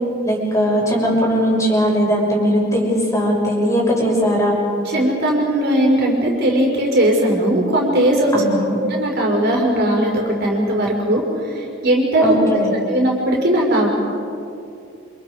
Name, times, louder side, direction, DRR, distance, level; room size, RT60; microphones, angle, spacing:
voice 1, 0.2-4.6 8.3-8.8 12.2-12.7, equal, 15° left, -3 dB, 6.5 m, -19 dB
voice 2, 4.9-8.3 8.8-11.2 11.5-12.3 12.9-13.9, right 1 dB, 55° right, -1 dB, 5.4 m, -18 dB
29.0 x 27.5 x 5.1 m, 2.5 s
head